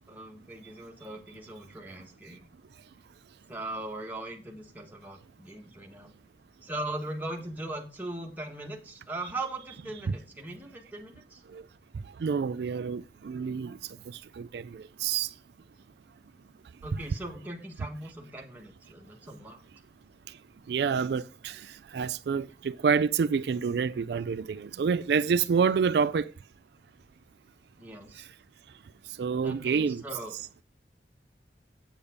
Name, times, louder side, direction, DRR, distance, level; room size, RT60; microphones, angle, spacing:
voice 1, 0.1-2.5 3.5-6.1 6.6-11.4 16.8-19.6 27.8-28.3 29.4-30.3, right 2 dB, 10° right, 1.5 m, -39 dB
voice 2, 11.9-15.3 20.3-20.4 20.7-26.3 28.1-28.3 29.0-30.0, right 6 dB, 70° right, 0.3 m, -28 dB
8.2 x 7.1 x 5.0 m
head